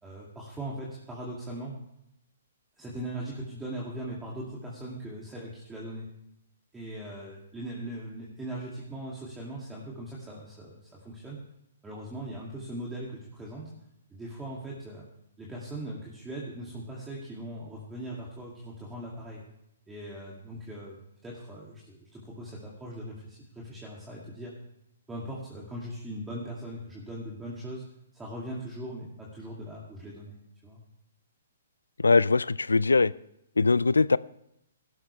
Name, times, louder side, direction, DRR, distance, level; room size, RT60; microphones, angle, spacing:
voice 1, 0.0-1.8 2.8-6.1 6.7-11.4 11.8-13.7 14.1-15.1 15.4-19.4 19.9-24.5 25.1-27.8 28.1-30.4 30.6-30.8, right 1 dB, 10° right, 2.6 m, -40 dB
voice 2, 32.0-33.1 33.6-34.2, left 4 dB, 85° left, 0.4 m, -21 dB
16.5 x 12.0 x 3.4 m
hypercardioid pair, 130°, 0 cm